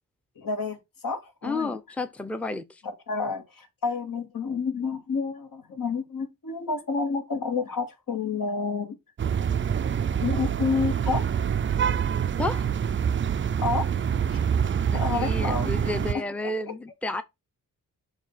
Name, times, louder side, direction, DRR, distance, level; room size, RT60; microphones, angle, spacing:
voice 1, 0.4-0.8 1.0-1.7 3.1-9.0 10.2-11.3 13.6-13.9 14.3-14.4 14.9-15.7 16.1-16.2, left 4 dB, 70° left, 2.0 m, -29 dB
voice 2, 1.4-2.8 12.4-12.7 14.9-17.2, left 2 dB, 5° left, 0.7 m, -31 dB
sound 1, 9.2-16.1, right 8 dB, 35° right, 0.4 m, -26 dB
7.2 x 2.8 x 5.6 m
cardioid pair, 75°, 34 cm